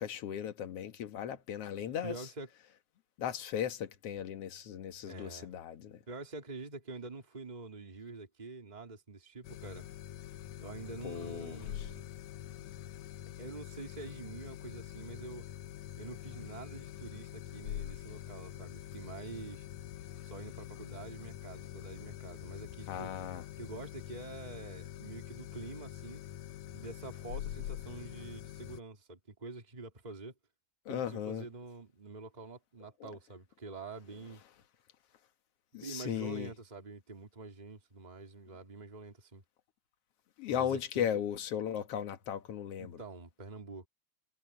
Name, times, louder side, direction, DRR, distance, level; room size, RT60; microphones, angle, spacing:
voice 1, 0.0-2.3 3.2-6.0 11.0-11.9 22.9-23.5 30.9-31.5 33.0-33.1 35.7-36.5 40.4-43.0, left 9 dB, 60° left, 2.3 m, -37 dB
voice 2, 2.0-2.5 5.1-5.5 6.1-9.9 10.6-12.1 13.4-15.4 16.0-19.6 20.2-23.1 23.6-26.2 26.7-30.3 30.9-34.4 35.7-39.4 40.5-41.1 42.8-43.9, right 3 dB, 15° right, 2.8 m, -46 dB
sound 1, 9.4-28.8, left 12 dB, 80° left, 2.2 m, -45 dB
omnidirectional pair, 3.3 m